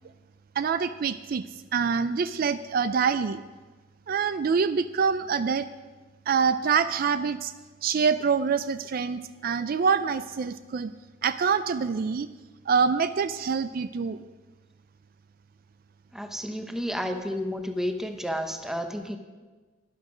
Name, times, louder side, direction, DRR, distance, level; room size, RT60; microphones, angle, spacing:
voice 1, 0.6-1.4 1.7-3.4 4.1-5.7 6.3-7.5 7.8-10.9 11.2-12.3 12.7-14.2, right 6 dB, 50° right, 13 dB, 0.4 m, -25 dB
voice 2, 16.1-19.2, equal, ahead, 5 dB, 0.9 m, -31 dB
12.5 x 10.5 x 5.0 m, 1.3 s
head